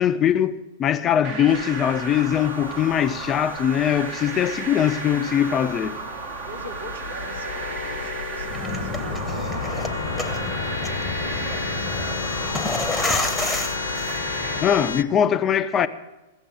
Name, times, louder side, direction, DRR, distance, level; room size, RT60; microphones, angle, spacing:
voice 1, 0.0-6.0 14.6-15.9, left 9 dB, 25° left, 0.6 m, -21 dB
sound 1, 1.2-14.6, right 5 dB, 45° right, 1.8 m, -34 dB
sound 2, 1.5-15.0, left 5 dB, 70° left, 0.9 m, -33 dB
voice 2, 6.4-9.9 10.1-10.9 11.2-12.3, right 1 dB, 80° right, 2.3 m, -42 dB
sound 3, 8.4-14.6, left 2 dB, 5° left, 1.2 m, -30 dB
15.5 x 7.2 x 7.3 m
figure-of-eight pair, 100°, 0 cm